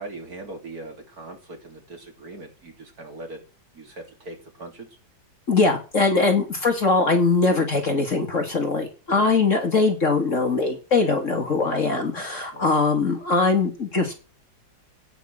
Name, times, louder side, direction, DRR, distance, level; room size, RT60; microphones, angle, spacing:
voice 1, 0.0-3.4 3.7-4.9 6.3-6.4 9.1-9.3 12.5-12.8, right 2 dB, 50° right, 3 dB, 3.6 m, -40 dB
voice 2, 5.5-14.1, left 3 dB, 40° left, 4 dB, 2.2 m, -21 dB
16.0 x 9.2 x 6.3 m, 0.36 s
omnidirectional pair, 2.1 m